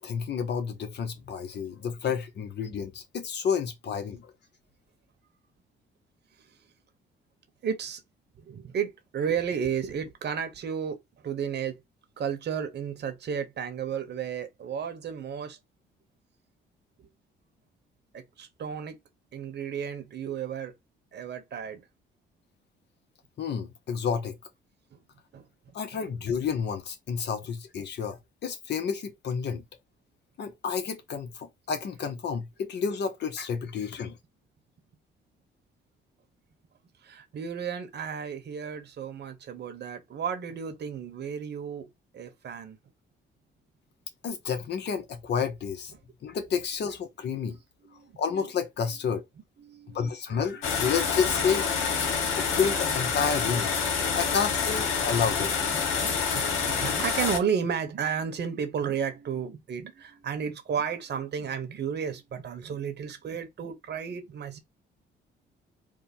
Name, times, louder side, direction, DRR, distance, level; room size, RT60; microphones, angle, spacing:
voice 1, 0.0-4.3 23.4-24.4 25.7-29.6 30.4-34.2 44.2-45.9 46.2-47.6 48.2-49.2 49.9-51.7 52.4-53.7 54.1-55.5, left 6 dB, 60° left, 1.1 m, -30 dB
voice 2, 7.6-8.0 8.4-11.8 12.2-15.6 17.0-17.1 18.1-19.0 19.3-20.7 21.1-21.8 24.9-25.0 25.3-25.5 25.9-26.0 37.0-41.9 42.1-42.8 47.8-48.2 49.6-50.0 50.3-50.8 51.7-51.8 52.2-52.6 54.1-54.7 55.0-55.5 56.0-64.6, right 7 dB, 60° right, 1.2 m, -33 dB
sound 1, 50.6-57.4, left 6 dB, 90° left, 1.2 m, -27 dB
3.6 x 2.3 x 4.3 m
cardioid pair, 90°, 20 cm